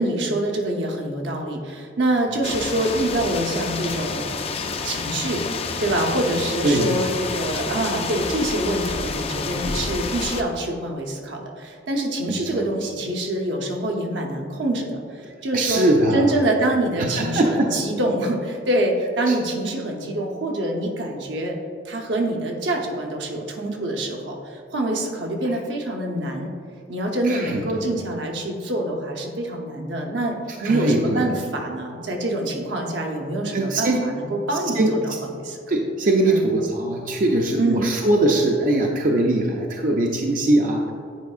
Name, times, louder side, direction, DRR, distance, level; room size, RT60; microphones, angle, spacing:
voice 1, 0.0-4.2 4.8-5.4 5.8-15.8 16.1-21.6 21.8-26.5 26.9-30.4 30.6-35.1 35.4-35.6 36.2-36.5 37.6-37.8, right 1 dB, 80° right, 2 dB, 0.9 m, -25 dB
sound 1, 2.4-10.4, left 4 dB, 35° left, 0.4 m, -29 dB
voice 2, 6.6-7.2 12.3-12.6 15.5-16.3 17.0-17.7 19.3-19.4 27.2-27.9 30.6-31.3 33.5-34.1 34.8-34.9 35.7-40.9, right 1 dB, 50° right, 1 dB, 0.5 m, -21 dB
9.3 x 4.5 x 2.4 m, 2.3 s
head